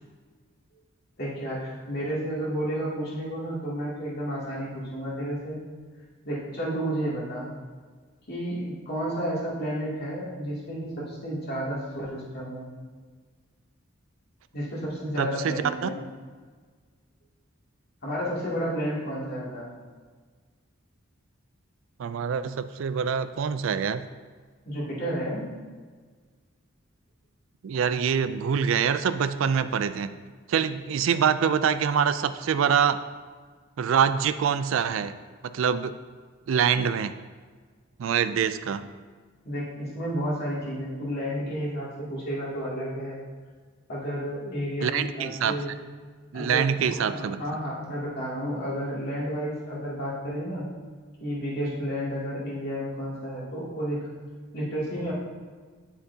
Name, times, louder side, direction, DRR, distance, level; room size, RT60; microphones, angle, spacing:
voice 1, 1.2-5.6 6.2-7.5 8.3-12.7 14.5-16.0 18.0-19.7 24.7-25.5 39.5-43.2 43.9-45.8 46.3-50.7 51.2-54.1 54.5-55.1, equal, 50° left, -7 dB, 2.4 m, -31 dB
voice 2, 15.2-15.9 22.0-24.1 27.6-30.2 30.5-33.0 33.8-35.1 35.5-35.9 36.5-37.1 38.0-38.9 44.8-45.5 46.3-47.4, right 7 dB, 70° right, 12 dB, 0.3 m, -25 dB
9.2 x 7.1 x 2.8 m, 1.5 s
head